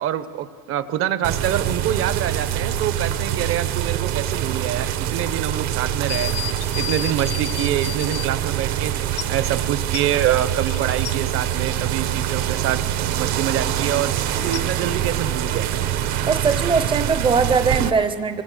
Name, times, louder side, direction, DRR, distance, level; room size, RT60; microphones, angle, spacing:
voice 1, 0.0-6.3 6.8-8.9 9.3-15.7, right 11 dB, 45° right, 13 dB, 0.9 m, -26 dB
sound 1, 1.2-17.9, right 11 dB, 65° right, 1.3 m, -24 dB
sound 2, 6.1-8.3 9.2-9.3 9.9-11.2 14.5-14.6, left 13 dB, 50° left, 0.7 m, -32 dB
voice 2, 16.3-18.4, right 5 dB, 15° right, 11 dB, 0.6 m, -20 dB
24.5 x 24.5 x 6.7 m, 2.2 s
cardioid pair, 180°, 31 cm